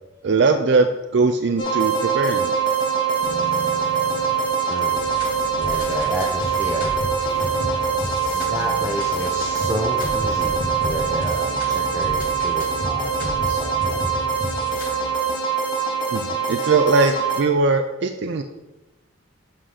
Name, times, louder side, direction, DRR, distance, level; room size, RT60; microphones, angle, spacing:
voice 1, 0.2-2.6 16.1-18.4, right 3 dB, 60° right, 7 dB, 0.4 m, -20 dB
sound 1, 1.6-17.4, right 6 dB, 25° left, 1.4 m, -23 dB
sound 2, 3.2-11.2, left 1 dB, 90° left, 1.6 m, -39 dB
voice 2, 4.7-5.1 5.6-6.9 8.3-14.3, right 1 dB, 15° right, -1 dB, 0.6 m, -31 dB
sound 3, 4.9-15.1, left 1 dB, 40° left, 2.3 m, -33 dB
7.5 x 4.9 x 5.7 m, 1.0 s
head